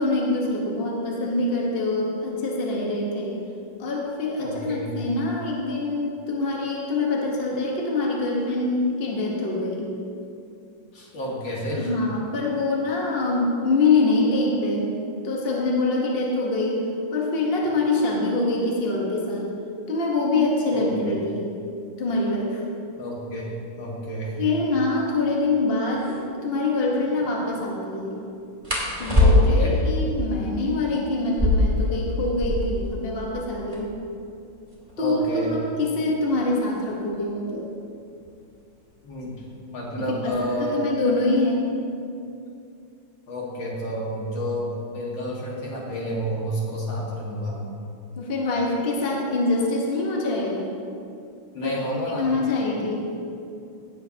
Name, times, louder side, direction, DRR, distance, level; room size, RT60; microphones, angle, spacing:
voice 1, 0.0-3.4 3.8-9.9 11.8-14.9 15.2-16.8 17.1-19.5 19.9-21.5 22.0-22.6 24.4-28.1 29.0-33.9 35.0-37.7 40.0-41.7 48.2-50.7 51.6-51.7 52.1-53.1, left 2 dB, 35° left, -2 dB, 1.3 m, -25 dB
voice 2, 4.4-4.9 10.9-11.9 20.7-20.9 23.0-23.5 23.8-24.4 29.2-29.7 35.0-35.5 39.0-39.3 39.7-40.9 43.3-47.6 51.5-52.8, equal, 65° left, -4 dB, 2.5 m, -30 dB
sound 1, 26.0-26.2 28.6-29.8 31.2-32.9 33.2-33.3 33.5-34.0 34.7-37.2 38.2-38.5 39.0-39.4 39.8-40.5, left 1 dB, 15° right, 2.3 m, -22 dB
17.5 x 7.4 x 2.9 m, 2.5 s
omnidirectional pair, 2.3 m